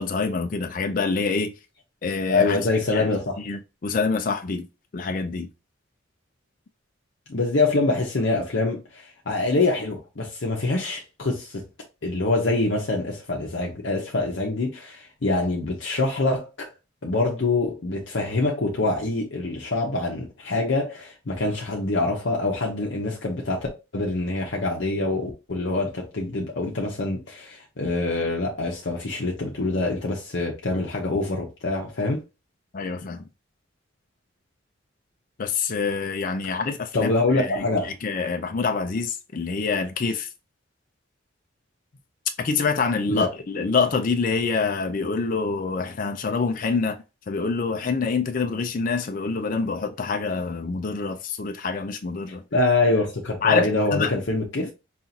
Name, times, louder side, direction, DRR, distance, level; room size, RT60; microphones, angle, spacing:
voice 1, 0.0-1.5 2.0-2.6 2.9-3.1 3.5-4.7 4.9-5.5 32.7-33.3 35.4-37.7 38.0-40.3 42.4-47.0 47.3-52.4 53.4-54.1 54.6-54.7, left 4 dB, 45° left, 0.4 m, -26 dB
voice 2, 2.3-3.4 7.3-11.7 12.0-16.7 17.0-23.7 23.9-32.2 36.9-37.9 43.1-43.3 52.5-54.7, left 2 dB, 65° left, 0.8 m, -25 dB
5.4 x 2.4 x 2.7 m
head